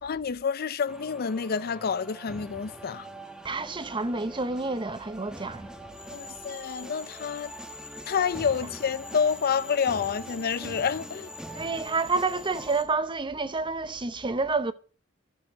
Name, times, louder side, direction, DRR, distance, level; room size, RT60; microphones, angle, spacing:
voice 1, 0.0-3.1 6.1-7.5 8.1-11.3, left 6 dB, 50° left, 0.5 m, -28 dB
sound 1, 0.9-12.8, right 1 dB, 5° right, 1.1 m, -44 dB
voice 2, 3.4-5.7 11.5-14.7, right 3 dB, 25° right, 0.8 m, -29 dB
sound 2, 5.9-12.8, left 4 dB, 10° left, 2.1 m, -46 dB
13.5 x 7.2 x 6.3 m
head